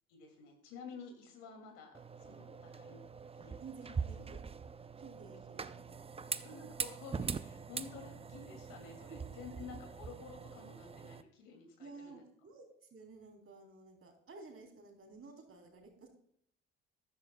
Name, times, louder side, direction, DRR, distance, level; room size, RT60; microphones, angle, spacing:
voice 1, 0.1-3.0 3.3-3.6 4.1-4.3 6.3-12.2, left 5 dB, 80° left, 3 dB, 2.6 m, -51 dB
sound 1, 1.9-11.2, right 5 dB, 20° right, 0.5 m, -43 dB
voice 2, 3.6-4.4 5.0-6.0 9.1-9.2 9.5-9.6 11.8-16.1, right 4 dB, 45° right, 3 dB, 3.4 m, -53 dB
14.0 x 10.5 x 2.3 m, 0.68 s
hypercardioid pair, 60°, 32 cm